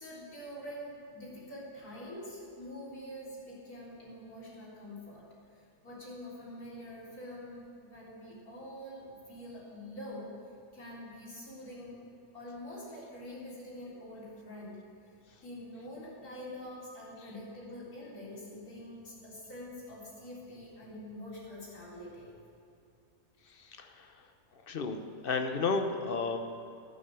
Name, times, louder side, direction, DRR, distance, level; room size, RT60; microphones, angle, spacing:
voice 1, 0.0-5.3 5.6-10.3 10.7-12.0 12.3-14.8 15.4-22.3, left 1 dB, 80° left, -7 dB, 4.4 m, -45 dB
voice 2, 24.7-26.4, left 4 dB, 45° left, 6 dB, 1.0 m, -32 dB
12.0 x 9.4 x 6.9 m, 2.6 s
omnidirectional pair, 1.6 m